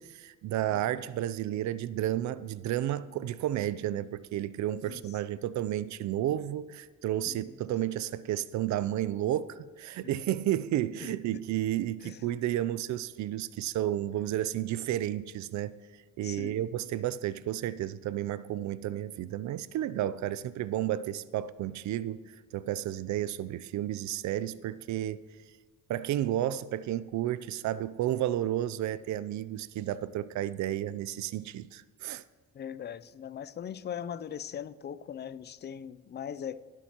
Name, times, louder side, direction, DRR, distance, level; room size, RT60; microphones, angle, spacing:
voice 1, 0.0-15.8 16.2-22.2 22.5-25.3 25.9-32.2, right 12 dB, 70° right, 0.4 m, -32 dB
voice 2, 16.2-16.6 32.5-36.6, left 8 dB, 35° left, 0.4 m, -40 dB
17.5 x 7.3 x 2.9 m
cardioid pair, 90°, 30 cm